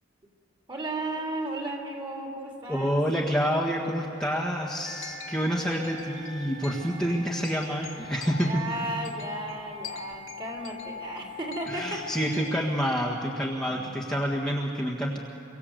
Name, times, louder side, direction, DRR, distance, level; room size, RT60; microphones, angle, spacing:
voice 1, 0.7-3.0 8.4-12.4 13.3-14.1, right 2 dB, 25° right, 0 dB, 3.3 m, -35 dB
voice 2, 2.7-8.7 11.7-15.2, equal, 5° left, -3 dB, 1.6 m, -28 dB
sound 1, 4.8-13.0, left 3 dB, 85° left, 2.1 m, -41 dB
25.5 x 24.0 x 8.0 m, 2.6 s
head